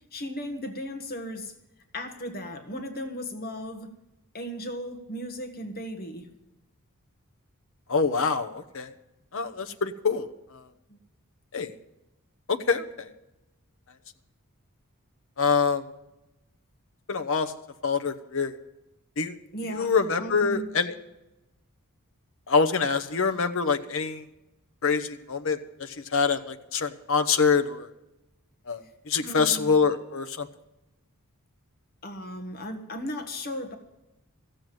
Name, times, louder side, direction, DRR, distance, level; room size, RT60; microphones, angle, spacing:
voice 1, 0.1-1.5 1.9-3.9 4.3-6.3 10.9-11.0 19.5-20.7 29.1-29.8 32.0-33.8, equal, 45° left, 6 dB, 1.5 m, -36 dB
voice 2, 7.9-8.9 9.3-10.3 11.5-11.7 12.5-13.1 15.4-15.8 17.1-17.5 17.8-18.5 19.2-19.4 19.7-20.9 22.5-24.2 24.8-27.9 28.7-28.8 29.1-30.5, left 5 dB, 65° left, 6 dB, 0.9 m, -25 dB
14.5 x 7.8 x 9.1 m, 0.95 s
head